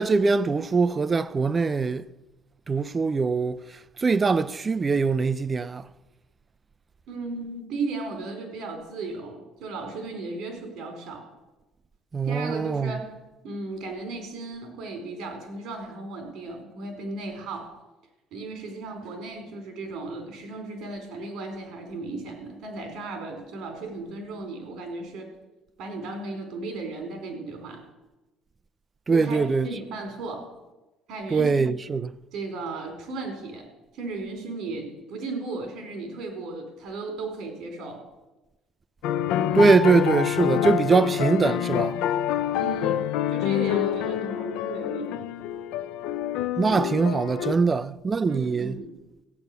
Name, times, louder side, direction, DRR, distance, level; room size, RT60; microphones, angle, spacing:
voice 1, 0.0-2.1 2.7-5.9 12.1-13.0 29.1-29.7 31.3-32.1 39.5-42.0 46.6-48.8, right 4 dB, 25° right, 0.4 m, -22 dB
voice 2, 7.1-11.2 12.2-13.1 13.4-17.7 18.3-25.3 25.8-27.8 29.1-30.4 31.1-31.7 32.3-33.6 33.9-38.0 42.6-45.3 48.3-48.9, right 3 dB, 65° right, 4.4 m, -35 dB
sound 1, 39.0-47.5, left 10 dB, 80° left, 0.6 m, -26 dB
15.0 x 9.2 x 6.8 m
cardioid pair, 130°, 0 cm